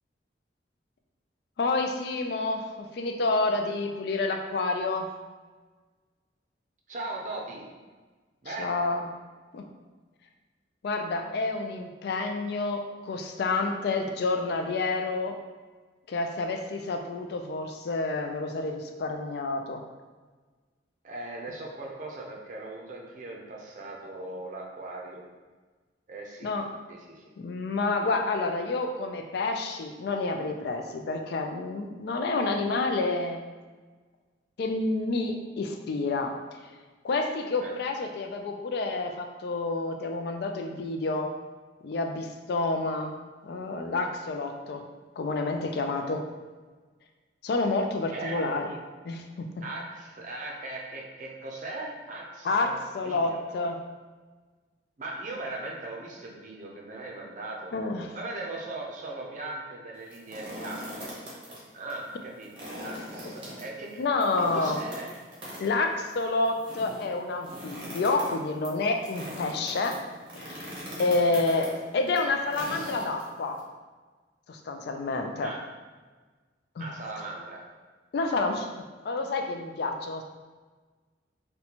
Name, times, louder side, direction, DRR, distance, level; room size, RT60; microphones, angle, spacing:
voice 1, 1.6-5.1 8.5-9.1 9.5-9.7 10.8-15.4 16.1-19.8 26.4-26.7 27.4-33.4 34.6-36.3 37.0-41.3 41.8-43.1 43.4-44.8 45.2-46.2 47.4-48.7 49.0-49.6 52.4-53.8 57.7-58.2 64.0-64.8 65.6-70.0 70.4-70.7 71.0-73.6 74.5-75.5 76.8-76.9 78.1-78.7 79.0-80.2, left 3 dB, 60° left, 4 dB, 0.3 m, -29 dB
voice 2, 6.9-7.7 8.4-8.8 21.0-25.2 26.1-26.5 26.9-27.3 27.6-27.8 37.6-37.7 44.6-44.8 48.1-48.5 49.6-52.8 53.0-53.4 55.0-57.7 58.1-61.1 61.7-62.5 62.8-64.0 64.4-65.1 71.2-71.4 75.4-75.6 76.8-77.7, right 2 dB, 45° right, -2 dB, 0.5 m, -39 dB
sound 1, 60.0-61.6 61.9-62.0 62.4-73.6, equal, 30° right, 0.9 m, -41 dB
4.0 x 2.2 x 2.9 m, 1.3 s
head